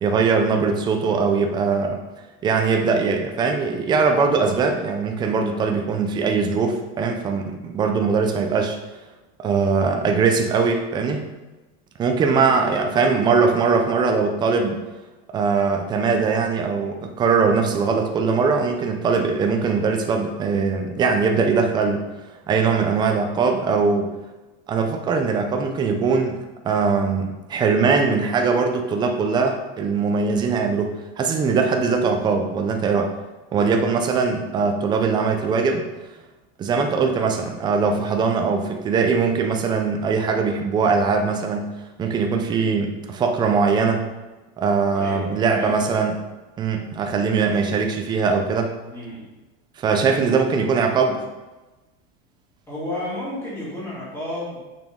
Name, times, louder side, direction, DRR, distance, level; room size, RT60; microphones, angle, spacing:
voice 1, 0.0-2.0 2.4-8.8 9.4-11.2 12.0-14.8 15.3-22.0 22.5-24.1 24.7-26.4 26.6-33.1 33.5-35.9 36.6-41.7 42.0-44.1 44.6-46.2 46.6-48.7 49.8-51.2, right 5 dB, 15° right, 4 dB, 0.4 m, -21 dB
voice 2, 12.2-12.6 44.9-45.9 47.4-47.6 48.9-49.2 50.1-50.4 52.7-54.6, left 1 dB, 5° left, -9 dB, 2.4 m, -32 dB
7.0 x 5.8 x 3.6 m, 1.1 s
cardioid pair, 175°, 33 cm